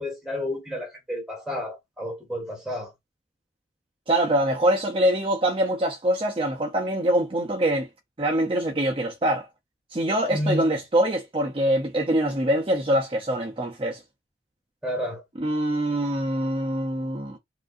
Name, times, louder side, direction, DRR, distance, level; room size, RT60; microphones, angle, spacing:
voice 1, 0.0-2.9 10.3-10.7 14.8-15.2, left 1 dB, 5° right, 1.8 m, -30 dB
voice 2, 4.1-7.9 8.2-9.5 9.9-14.0 15.4-17.4, right 1 dB, 30° right, 0.6 m, -24 dB
4.8 x 2.6 x 2.5 m
head